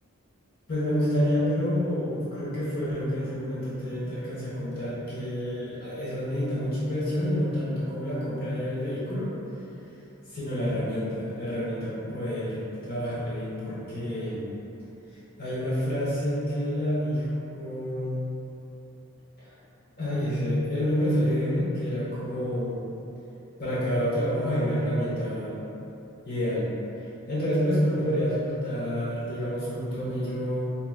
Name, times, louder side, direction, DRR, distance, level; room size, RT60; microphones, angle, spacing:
voice 1, 0.7-9.3 10.3-12.5 12.8-14.5 15.4-18.2 19.4-19.5 20.0-22.8 23.6-25.6 26.2-26.7 27.3-30.7, equal, 50° left, -10 dB, 1.0 m, -28 dB
4.5 x 2.9 x 2.3 m, 2.8 s
head